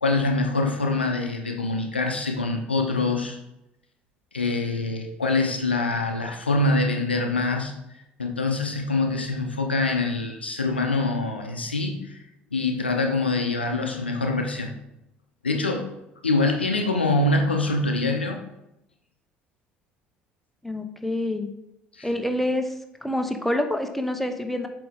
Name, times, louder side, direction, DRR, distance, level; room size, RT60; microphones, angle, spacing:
voice 1, 0.0-3.4 4.3-7.7 8.2-12.2 12.5-14.7 15.4-15.8 16.2-18.4 21.9-22.1, left 2 dB, 90° left, 4 dB, 0.6 m, -24 dB
voice 2, 20.6-21.5 22.0-22.7 23.0-24.7, left 1 dB, 5° left, 5 dB, 0.8 m, -27 dB
7.8 x 3.4 x 3.5 m, 0.86 s
figure-of-eight pair, 60°, 6 cm